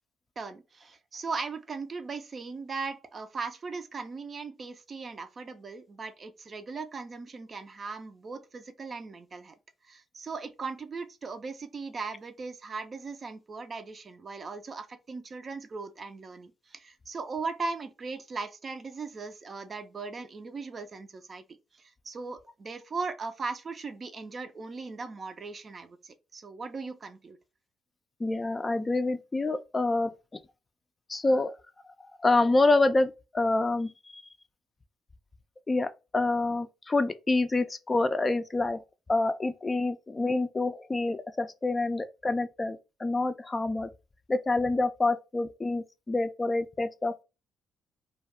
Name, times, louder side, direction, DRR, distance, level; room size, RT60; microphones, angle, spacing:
voice 1, 0.4-9.6 9.9-21.4 21.7-27.4, right 4 dB, 45° right, 0.4 m, -38 dB
voice 2, 28.2-30.4 31.1-31.5 32.0-34.2 35.7-38.8 39.1-43.9 44.3-47.2, left 2 dB, 30° left, 0.3 m, -27 dB
2.3 x 2.2 x 3.3 m
supercardioid pair, 55°, 0 cm